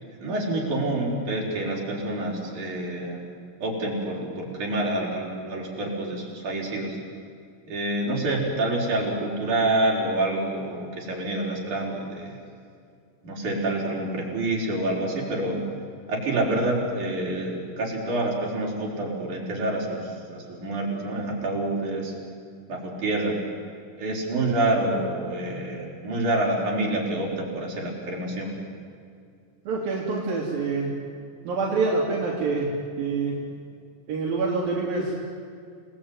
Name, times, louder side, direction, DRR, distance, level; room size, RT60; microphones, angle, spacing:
voice 1, 0.2-3.2 3.6-7.0 7.7-12.4 13.2-15.6 16.1-22.1 22.7-23.4 24.0-28.5, right 2 dB, 60° right, -3 dB, 6.7 m, -27 dB
voice 2, 29.7-30.9 31.4-32.7 33.0-33.3 34.1-35.1, right 4 dB, 80° right, -3 dB, 4.9 m, -26 dB
29.0 x 19.5 x 9.8 m, 2.3 s
omnidirectional pair, 4.0 m